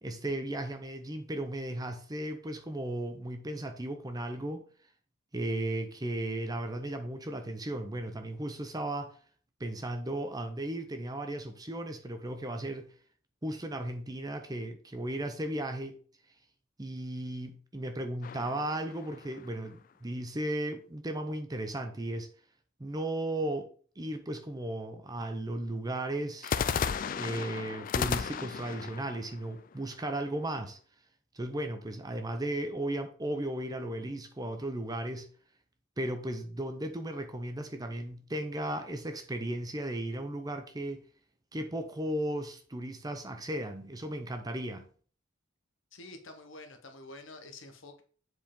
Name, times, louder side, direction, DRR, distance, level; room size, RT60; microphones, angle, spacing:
voice 1, 0.0-4.7 5.3-9.1 9.6-12.9 13.4-16.0 16.8-22.3 22.8-23.7 24.0-26.5 27.1-30.8 31.3-35.3 36.0-41.0 41.5-44.9, right 1 dB, 20° right, 0.6 m, -35 dB
sound 1, 18.2-19.7 26.4-30.4, left 6 dB, 40° left, 0.3 m, -34 dB
voice 2, 45.9-48.0, left 2 dB, 60° left, 1.1 m, -48 dB
7.6 x 4.6 x 3.7 m
head